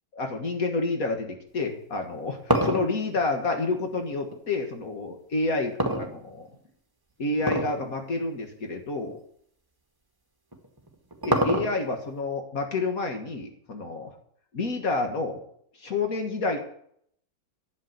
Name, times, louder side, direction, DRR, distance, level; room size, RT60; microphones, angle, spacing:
voice 1, 0.2-5.7 6.0-6.5 7.2-9.2 11.3-14.1 14.5-15.4 15.8-16.6, left 3 dB, 70° left, 4 dB, 2.0 m, -29 dB
sound 1, 2.0-4.4 5.8-6.7 7.4-7.8 8.2-8.3 9.0-9.1 10.5-12.0, right 1 dB, 15° right, 1.7 m, -26 dB
11.5 x 7.3 x 9.6 m, 0.67 s
omnidirectional pair, 1.6 m